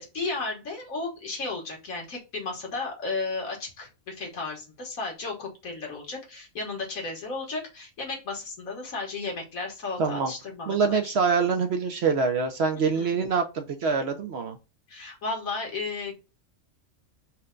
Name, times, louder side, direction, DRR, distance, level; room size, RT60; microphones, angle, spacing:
voice 1, 0.0-11.1 12.9-13.2 14.9-16.1, left 3 dB, 85° left, 0 dB, 1.8 m, -34 dB
voice 2, 10.0-10.3 10.7-14.6, right 5 dB, 60° right, 5 dB, 0.8 m, -25 dB
4.4 x 2.2 x 3.6 m, 0.28 s
omnidirectional pair, 1.4 m